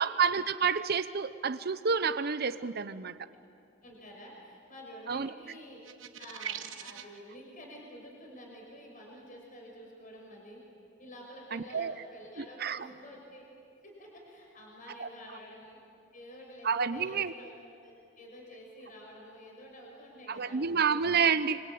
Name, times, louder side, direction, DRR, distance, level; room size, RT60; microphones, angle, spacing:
voice 1, 0.0-3.1 5.1-5.3 11.5-11.9 12.4-12.9 15.0-15.1 16.6-17.3 20.3-21.7, right 6 dB, 55° right, 12 dB, 0.8 m, -29 dB
voice 2, 3.8-5.8 6.2-10.6 11.0-13.5 13.8-15.8 16.1-17.5 17.8-21.1, equal, 45° left, 0 dB, 5.7 m, -49 dB
sound 1, 5.8-7.2, right 9 dB, 85° right, 1.2 m, -41 dB
26.5 x 26.0 x 8.6 m, 2.4 s
head